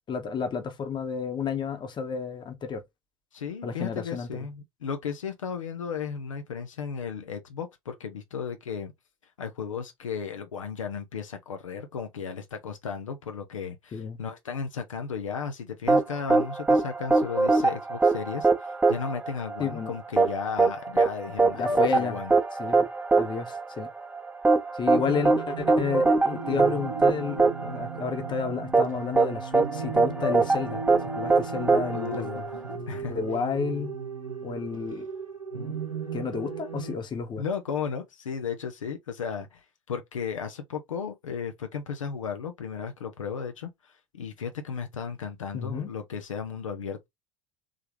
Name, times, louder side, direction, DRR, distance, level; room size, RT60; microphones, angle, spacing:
voice 1, 0.1-2.8 3.6-4.5 13.9-14.2 19.6-20.0 21.5-22.2 22.6-22.9 23.2-23.9 24.7-30.8 31.2-32.4 33.1-34.0 34.4-35.1 36.1-37.4 45.5-45.9, left 5 dB, 25° left, 1.1 m, -31 dB
voice 2, 3.3-8.9 9.4-22.3 31.9-32.5 32.9-33.2 37.4-39.6 39.9-47.1, left 6 dB, 75° left, 0.7 m, -35 dB
sound 1, 15.9-32.7, right 3 dB, 10° right, 0.8 m, -23 dB
sound 2, 24.9-36.9, right 5 dB, 90° right, 0.8 m, -36 dB
3.6 x 3.3 x 3.2 m
figure-of-eight pair, 75°, 17 cm